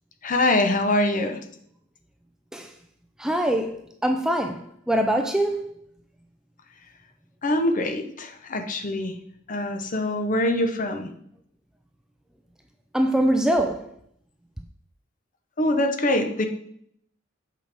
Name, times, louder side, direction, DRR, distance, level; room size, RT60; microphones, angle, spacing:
voice 1, 0.2-1.4 7.4-9.1 9.5-11.1 15.6-16.5, left 1 dB, 40° left, 0.7 m, -24 dB
voice 2, 3.2-3.7 4.0-5.7 12.9-13.9, right 1 dB, 5° right, 0.4 m, -23 dB
7.7 x 5.0 x 3.4 m
head